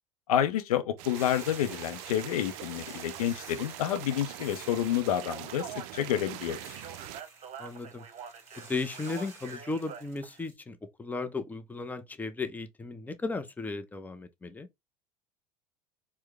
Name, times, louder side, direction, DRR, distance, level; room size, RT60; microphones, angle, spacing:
voice 1, 0.3-6.8, left 10 dB, 75° left, 0.5 m, -29 dB
sound 1, 1.0-7.2, right 15 dB, 55° right, 0.4 m, -43 dB
Hiss / Boiling, 1.1-10.5, right 3 dB, 15° right, 1.7 m, -50 dB
Speech, 5.1-10.4, right 7 dB, 35° right, 1.0 m, -46 dB
voice 2, 7.6-8.0 8.6-14.7, left 3 dB, 10° left, 0.6 m, -35 dB
4.5 x 2.1 x 3.3 m
figure-of-eight pair, 75°, 19 cm